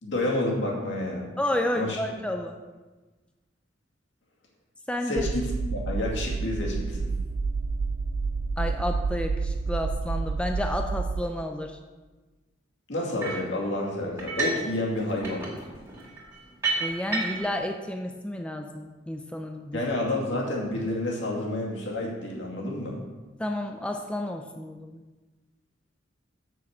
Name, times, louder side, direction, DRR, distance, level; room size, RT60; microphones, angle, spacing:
voice 1, 0.0-1.4 1.7-2.0 5.1-7.1 12.9-15.5 19.7-23.0, left 1 dB, 65° left, -2 dB, 2.3 m, -29 dB
voice 2, 1.4-2.6 4.9-5.3 8.6-11.8 16.8-19.8 23.4-25.0, left 1 dB, 5° left, 3 dB, 0.5 m, -31 dB
sound 1, 5.2-11.2, right 4 dB, 45° right, 0.3 m, -29 dB
sound 2, 13.2-13.5 14.2-14.7 15.0-17.6, right 3 dB, 15° right, 2.7 m, -31 dB
6.7 x 6.6 x 7.2 m, 1.2 s
head